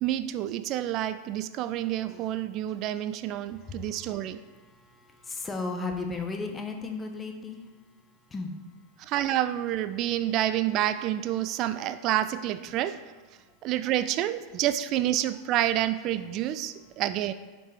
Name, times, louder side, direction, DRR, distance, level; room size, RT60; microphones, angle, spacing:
voice 1, 0.0-4.4 9.0-13.0 13.6-17.3, right 12 dB, 45° right, 11 dB, 0.3 m, -28 dB
voice 2, 4.5-7.7 8.3-8.6, left 3 dB, 20° left, 3 dB, 0.9 m, -35 dB
5.1 x 4.4 x 4.7 m, 1.3 s
hypercardioid pair, 110°, 0 cm